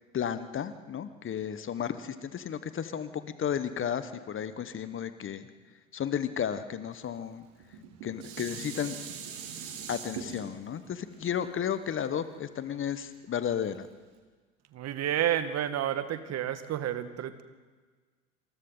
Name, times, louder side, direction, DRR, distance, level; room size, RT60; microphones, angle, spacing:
voice 1, 0.1-5.5 5.9-7.4 8.0-9.0 9.9-13.9, left 8 dB, 30° left, 12 dB, 1.3 m, -33 dB
Dishes pots and pans, 7.6-12.9 13.4-13.5, right 7 dB, 55° right, 4.3 m, -42 dB
voice 2, 14.7-17.4, right 11 dB, 40° right, 10 dB, 1.7 m, -30 dB
27.5 x 27.0 x 4.0 m, 1.4 s
figure-of-eight pair, 75°, 42 cm